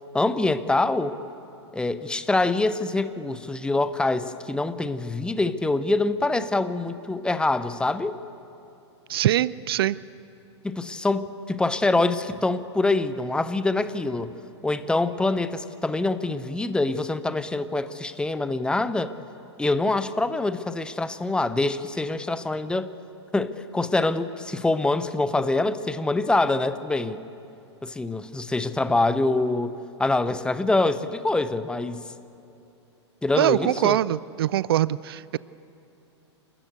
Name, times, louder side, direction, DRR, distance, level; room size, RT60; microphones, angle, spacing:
voice 1, 0.1-1.2 1.7-8.2 10.6-14.3 14.6-19.1 19.6-22.9 23.3-27.2 27.8-32.0 33.2-34.0, left 2 dB, 5° left, 13 dB, 0.7 m, -25 dB
voice 2, 9.1-10.0 33.3-35.4, right 13 dB, 55° right, 20 dB, 0.4 m, -23 dB
28.0 x 13.0 x 8.2 m, 2.7 s
figure-of-eight pair, 100°, 15 cm